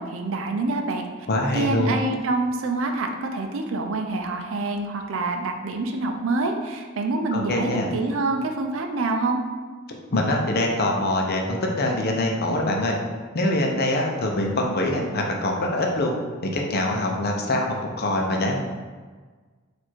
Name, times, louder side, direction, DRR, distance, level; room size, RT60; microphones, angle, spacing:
voice 1, 0.0-1.1 1.5-9.4, right 2 dB, 70° right, 4 dB, 0.5 m, -26 dB
voice 2, 1.3-2.0 7.3-7.9 10.1-13.0 13.3-16.1 16.4-18.6, left 1 dB, 50° left, 1 dB, 0.6 m, -24 dB
4.5 x 2.6 x 4.5 m, 1.4 s
head